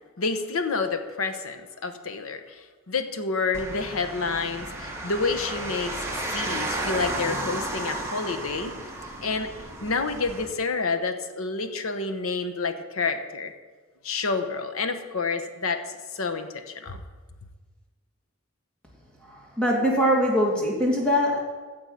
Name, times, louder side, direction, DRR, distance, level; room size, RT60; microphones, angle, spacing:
voice 1, 0.2-6.0 6.3-8.7 9.2-9.5 9.8-13.5 14.0-15.8 16.1-17.0, left 4 dB, 85° left, 8 dB, 1.0 m, -29 dB
sound 1, 3.5-10.5, right 2 dB, 10° right, 1.5 m, -33 dB
voice 2, 19.6-21.4, equal, 5° left, -4 dB, 2.5 m, -22 dB
15.5 x 7.1 x 5.8 m, 1.4 s
head